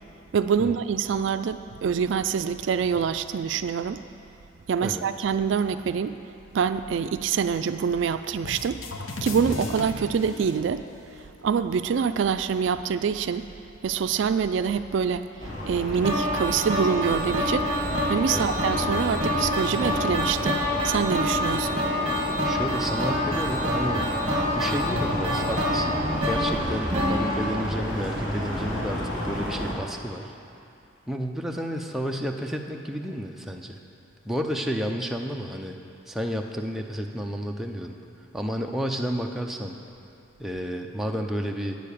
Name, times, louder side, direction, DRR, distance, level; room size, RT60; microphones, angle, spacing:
voice 1, 0.3-4.0 4.7-6.1 6.5-8.8 9.2-10.8 11.4-13.5 13.8-15.2 15.7-17.7 18.1-21.8, right 6 dB, 70° right, 11 dB, 0.3 m, -25 dB
sound 1, 8.4-11.3, left 3 dB, 85° left, 0.8 m, -36 dB
sound 2, 15.4-29.7, equal, 50° left, 2.4 m, -31 dB
sound 3, 16.0-28.2, left 1 dB, 30° right, 1.4 m, -27 dB
voice 2, 22.4-24.1 24.5-30.3 31.1-33.8 34.2-35.8 36.1-38.0 38.3-39.8 40.4-41.8, equal, ahead, 1 dB, 0.5 m, -31 dB
9.1 x 6.8 x 8.4 m, 2.7 s
head